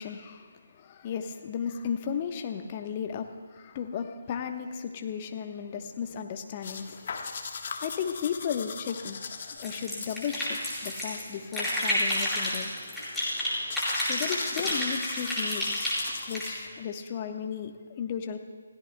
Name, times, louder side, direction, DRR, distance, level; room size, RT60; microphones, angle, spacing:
voice 1, 0.0-7.0 7.8-9.2 9.6-12.7 14.1-16.0 16.3-18.4, left 7 dB, 30° left, 5 dB, 1.1 m, -35 dB
sound 1, 6.6-16.8, left 5 dB, 45° left, 1.3 m, -41 dB
sound 2, 9.6-11.2 11.5-13.5 13.7-16.5, left 1 dB, 5° left, 4.9 m, -30 dB
29.5 x 16.5 x 2.3 m, 1.5 s
figure-of-eight pair, 145°, 0 cm